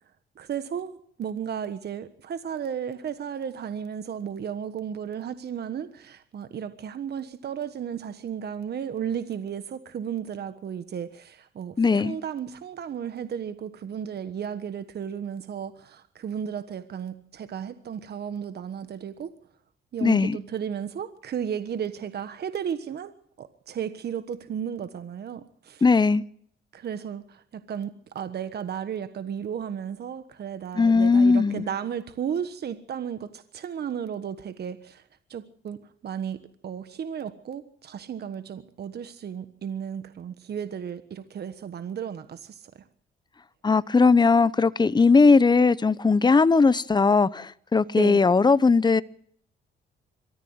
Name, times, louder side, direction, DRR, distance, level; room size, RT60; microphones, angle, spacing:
voice 1, 0.4-19.3 19.9-23.1 23.4-25.8 26.7-35.0 35.3-42.7 48.0-48.3, right 8 dB, 55° right, 1.4 m, -34 dB
voice 2, 11.8-12.2 20.0-20.4 25.8-26.2 30.8-31.7 43.6-49.0, left 4 dB, 20° left, 0.8 m, -19 dB
23.0 x 14.5 x 8.0 m
cardioid pair, 90°, 20 cm